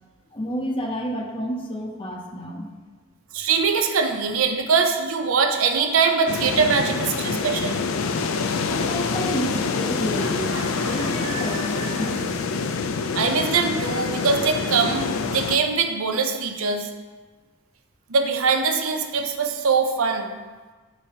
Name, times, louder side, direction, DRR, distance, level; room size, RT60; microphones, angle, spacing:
voice 1, 0.3-2.7 8.7-12.3, equal, 25° left, 1 dB, 0.6 m, -30 dB
voice 2, 3.3-7.8 13.1-16.9 18.1-20.3, right 5 dB, 70° right, 5 dB, 0.6 m, -22 dB
Chicken rooster, 5.5-6.7 10.1-12.3, right 2 dB, 50° right, 1.4 m, -37 dB
sound 1, 6.3-15.6, left 4 dB, 70° left, 0.4 m, -26 dB
7.7 x 5.0 x 2.8 m, 1.3 s
head